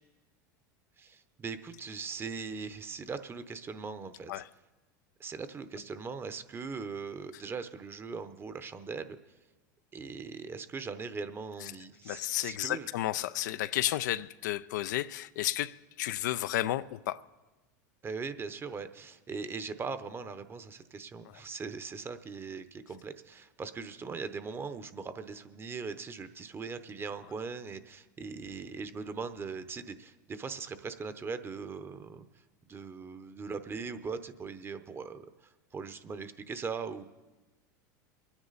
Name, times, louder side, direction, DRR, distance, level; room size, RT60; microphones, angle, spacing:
voice 1, 1.0-4.4 5.2-9.2 9.9-12.9 18.0-32.2 32.7-37.0, right 5 dB, 25° right, 0.9 m, -40 dB
voice 2, 12.0-17.2, left 14 dB, 75° left, 0.4 m, -32 dB
23.0 x 9.7 x 4.1 m
hypercardioid pair, 105°, 10 cm